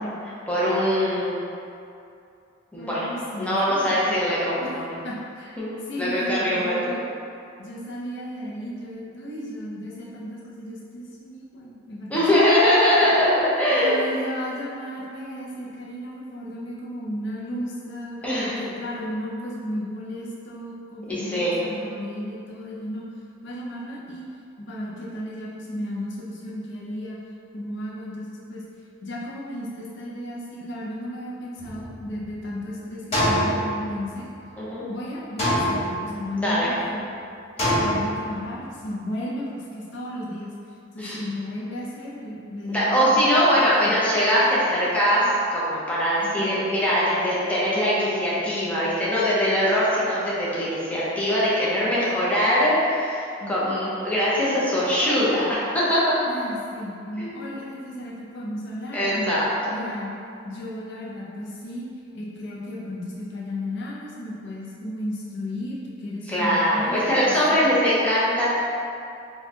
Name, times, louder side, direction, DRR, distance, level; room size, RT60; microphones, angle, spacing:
voice 1, 0.5-1.3 2.7-3.0 3.4-4.9 5.6-6.8 12.1-14.0 18.2-18.6 21.1-21.6 34.6-34.9 36.4-36.7 41.0-41.2 42.7-56.2 57.2-57.6 58.9-59.8 66.3-68.5, equal, 10° left, -9 dB, 0.7 m, -22 dB
voice 2, 2.8-4.1 4.6-4.7 5.0-5.6 5.9-7.0 7.6-12.1 12.9-13.2 13.7-23.1 23.4-24.2 24.6-27.2 27.5-28.6 29.0-34.3 34.9-37.1 37.8-43.2 43.8-44.1 46.2-46.6 53.4-53.9 56.3-59.3 59.7-60.1 60.4-61.9 62.1-67.9, left 1 dB, 65° left, -5 dB, 0.6 m, -34 dB
sound 1, 31.6-32.5 33.1-34.4 35.4-36.4 37.6-38.6, equal, 35° left, 1.2 m, -25 dB
4.2 x 2.3 x 2.8 m, 2.6 s
head